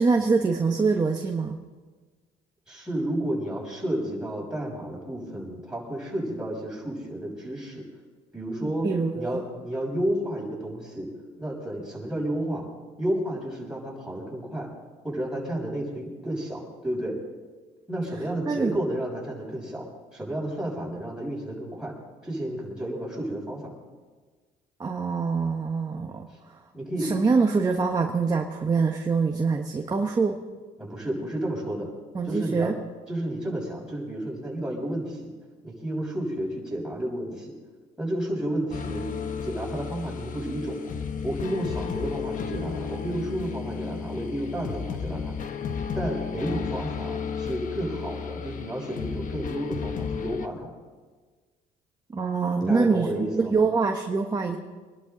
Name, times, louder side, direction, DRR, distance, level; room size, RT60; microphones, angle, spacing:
voice 1, 0.0-1.6 8.6-9.5 18.5-18.8 24.8-26.3 27.0-30.4 32.1-32.7 52.1-53.1 53.4-54.6, right 4 dB, 20° right, 2 dB, 1.3 m, -24 dB
voice 2, 2.7-7.9 8.3-8.9 9.1-11.1 11.4-12.7 13.0-14.7 15.0-17.2 17.9-21.9 22.2-23.7 26.7-27.1 30.8-31.9 32.2-32.7 33.1-35.3 35.6-37.5 38.0-39.1 39.4-40.8 41.2-45.3 45.9-50.7 52.6-53.7, right 1 dB, 5° right, -4 dB, 6.5 m, -31 dB
sound 1, 38.7-50.5, left 6 dB, 50° left, 1.2 m, -33 dB
25.5 x 11.5 x 4.0 m, 1.4 s
cardioid pair, 110°, 17 cm